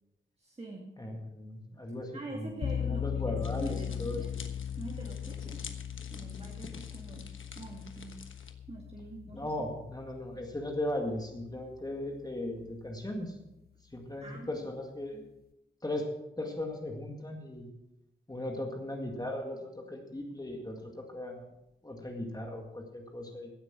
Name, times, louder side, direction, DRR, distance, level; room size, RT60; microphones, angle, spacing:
voice 1, 0.4-0.9 2.1-4.3 4.8-5.7 6.1-8.2 8.7-9.5 14.2-14.7, right 2 dB, 30° right, -2 dB, 2.2 m, -45 dB
voice 2, 1.0-4.2 9.3-13.4 13.9-15.2 15.8-16.1 16.4-17.7 18.3-21.5 21.8-23.5, left 1 dB, 20° left, 2 dB, 2.0 m, -37 dB
sound 1, 2.6-11.5, left 8 dB, 50° left, 0.5 m, -38 dB
sound 2, 3.4-8.5, left 5 dB, 80° left, 1.3 m, -49 dB
16.0 x 7.9 x 6.0 m, 0.90 s
wide cardioid pair, 100°, 20 cm